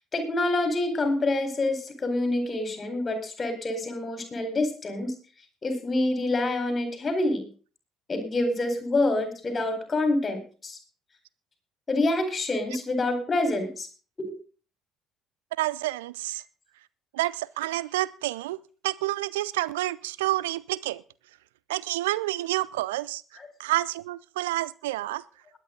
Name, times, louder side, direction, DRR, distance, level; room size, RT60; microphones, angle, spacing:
voice 1, 0.1-5.1 5.6-7.5 8.1-10.8 11.9-13.9 23.4-23.5, left 2 dB, 30° left, 8 dB, 4.5 m, -27 dB
voice 2, 15.6-16.4 17.1-21.0 21.7-23.2 23.6-25.2, right 16 dB, 70° right, 20 dB, 0.5 m, -29 dB
21.0 x 9.3 x 3.9 m, 0.38 s
figure-of-eight pair, 50°, 0 cm